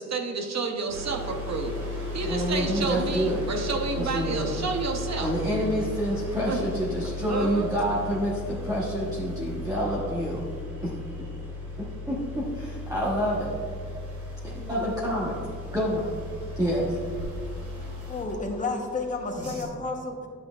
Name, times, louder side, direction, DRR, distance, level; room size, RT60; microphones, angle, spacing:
voice 1, 0.0-1.8 2.1-5.3 6.5-6.6 7.3-7.7, right 4 dB, 65° right, 4 dB, 0.8 m, -30 dB
sound 1, 0.9-19.6, left 2 dB, 85° right, 2.1 m, -36 dB
voice 2, 2.2-3.4 4.0-4.5 5.2-10.5 10.8-10.9 12.1-13.5 14.4-15.4 15.7-16.0 16.6-17.0, equal, 10° right, -7 dB, 1.0 m, -28 dB
voice 3, 18.1-20.3, left 3 dB, 25° left, 2 dB, 0.9 m, -31 dB
11.0 x 7.8 x 2.3 m, 2.2 s
wide cardioid pair, 165°, 29 cm